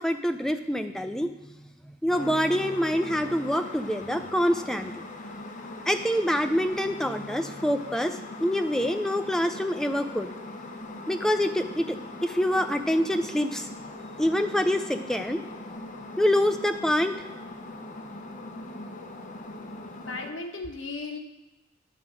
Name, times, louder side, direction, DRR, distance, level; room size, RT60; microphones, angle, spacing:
voice 1, 0.0-1.3 2.0-4.9 5.9-10.3 11.1-12.0 12.2-13.7 14.2-15.4 16.2-17.2, equal, 5° left, 7 dB, 0.4 m, -26 dB
sound 1, 2.1-20.3, left 2 dB, 40° left, 0.8 m, -41 dB
voice 2, 20.0-21.2, left 3 dB, 80° left, 3 dB, 1.1 m, -36 dB
9.1 x 3.6 x 6.3 m, 1.0 s
head